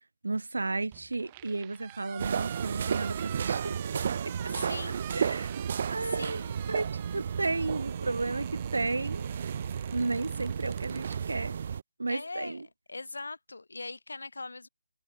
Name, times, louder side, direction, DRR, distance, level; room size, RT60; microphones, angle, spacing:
voice 1, 0.2-4.5 5.1-5.5 5.9-6.4 6.7-6.9 7.1-9.3 9.9-11.6 12.0-12.7, right 3 dB, 80° right, 1.6 m, -33 dB
sound 1, 0.9-11.2, right 19 dB, 15° right, 7.0 m, -48 dB
sound 2, 2.2-11.8, right 7 dB, 30° right, 0.5 m, -33 dB
voice 2, 4.5-5.0 6.0-6.5 12.1-12.6 12.9-14.7, left 3 dB, 80° left, 5.2 m, -40 dB
figure-of-eight pair, 175°, 0 cm